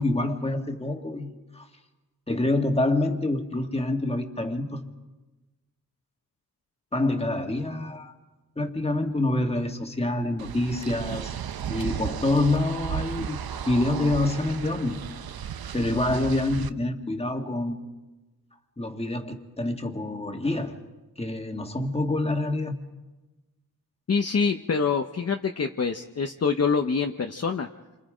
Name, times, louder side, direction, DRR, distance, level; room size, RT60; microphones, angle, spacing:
voice 1, 0.0-1.7 2.3-4.8 6.9-8.1 8.6-11.3 11.6-13.4 13.7-15.0 15.7-17.8 18.8-20.8 21.2-22.8, left 2 dB, 15° left, 4 dB, 1.8 m, -26 dB
sound 1, 10.4-16.7, right 9 dB, 85° right, 0.7 m, -34 dB
voice 2, 24.1-27.7, left 5 dB, 45° left, 4 dB, 0.8 m, -25 dB
29.0 x 25.5 x 5.1 m, 1.2 s
wide cardioid pair, 165°, 35 cm